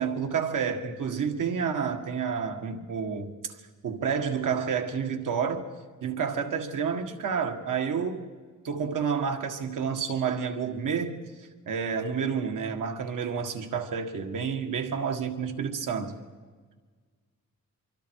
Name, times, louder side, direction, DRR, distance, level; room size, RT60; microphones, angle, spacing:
voice 1, 0.0-3.3 3.8-5.7 6.0-8.3 8.6-11.2 11.7-16.2, right 6 dB, 85° right, 2.0 m, -29 dB
24.5 x 24.5 x 4.7 m
wide cardioid pair, 165°, 31 cm